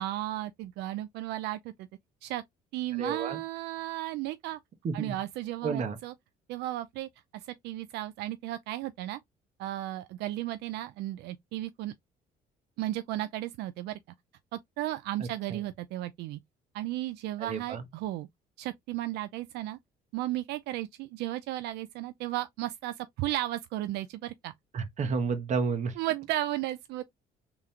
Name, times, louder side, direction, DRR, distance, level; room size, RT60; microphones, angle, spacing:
voice 1, 0.0-1.9 2.2-2.4 2.7-4.6 4.9-6.1 6.5-9.2 9.6-11.9 12.8-14.0 14.5-16.4 16.7-18.3 18.6-19.8 20.1-24.5 26.0-27.0, right 15 dB, 80° right, 0.4 m, -34 dB
voice 2, 3.0-3.4 4.8-5.2 5.6-6.0 15.2-15.6 17.4-17.9 24.7-26.0, right 5 dB, 45° right, 1.1 m, -31 dB
3.6 x 2.9 x 3.2 m
cardioid pair, 110°, 17 cm